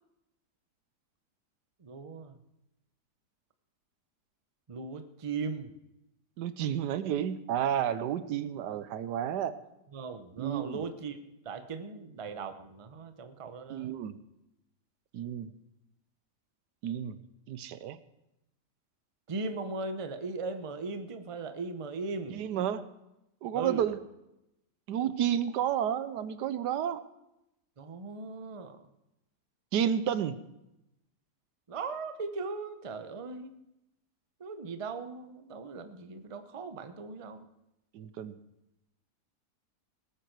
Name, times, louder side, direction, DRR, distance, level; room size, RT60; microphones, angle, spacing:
voice 1, 1.8-2.4 4.7-5.7 9.9-11.2 11.4-13.9 19.3-22.5 23.5-23.9 27.8-28.9 31.7-33.5 34.4-37.5, right 4 dB, 30° right, 8 dB, 0.6 m, -38 dB
voice 2, 6.4-9.6 10.4-10.8 13.7-14.2 15.1-15.5 16.8-17.2 17.5-18.0 22.3-22.8 23.4-24.0 24.9-27.0 29.7-30.4 37.9-38.4, right 9 dB, 85° right, 13 dB, 1.3 m, -31 dB
19.5 x 9.1 x 4.6 m, 0.89 s
omnidirectional pair, 1.8 m